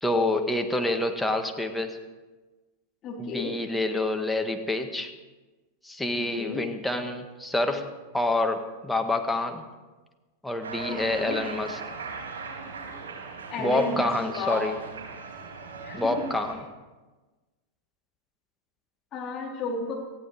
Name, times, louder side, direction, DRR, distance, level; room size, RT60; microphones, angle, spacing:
voice 1, 0.0-2.0 3.2-5.1 5.8-9.6 10.4-11.8 13.6-14.8 15.9-16.6, left 2 dB, 5° left, 4 dB, 1.7 m, -27 dB
voice 2, 3.0-3.5 6.2-6.6 10.9-11.4 13.5-14.7 15.8-16.3 19.1-19.9, left 3 dB, 30° left, 0 dB, 3.9 m, -33 dB
Cheering, 10.6-16.5, right 5 dB, 65° right, 3.7 m, -39 dB
18.5 x 15.0 x 4.9 m, 1.2 s
figure-of-eight pair, 90°, 0 cm